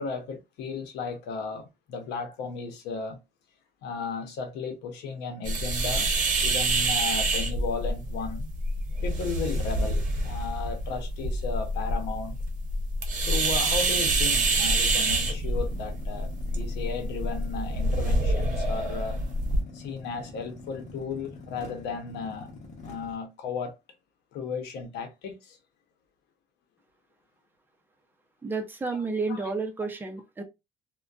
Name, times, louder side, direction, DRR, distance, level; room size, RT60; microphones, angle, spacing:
voice 1, 0.0-3.2 3.8-6.1 6.4-8.5 9.0-12.4 13.2-19.2 19.7-22.5 22.8-23.8 24.3-25.6, left 5 dB, 85° left, 0.7 m, -35 dB
sound 1, 5.5-19.6, right 2 dB, 50° right, 0.8 m, -27 dB
sound 2, 13.4-23.2, left 3 dB, 45° left, 1.0 m, -46 dB
voice 2, 28.4-30.4, right 3 dB, 10° right, 0.5 m, -31 dB
2.4 x 2.2 x 2.3 m
cardioid pair, 110°, 17 cm